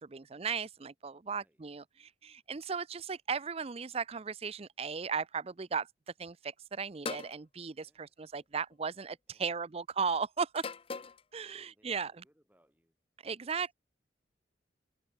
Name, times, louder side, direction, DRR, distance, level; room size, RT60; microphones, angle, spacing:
voice 1, 0.0-5.9 6.2-10.7 11.3-12.2 13.2-13.7, right 5 dB, 30° right, 0.5 m, -36 dB
voice 2, 1.3-1.6 7.8-8.4 9.3-9.7 11.4-13.0 13.4-13.7, equal, 10° right, 6.3 m, -72 dB
sound 1, 7.0-7.4 8.6-8.9 10.5-11.2, left 5 dB, 30° left, 0.5 m, -40 dB
head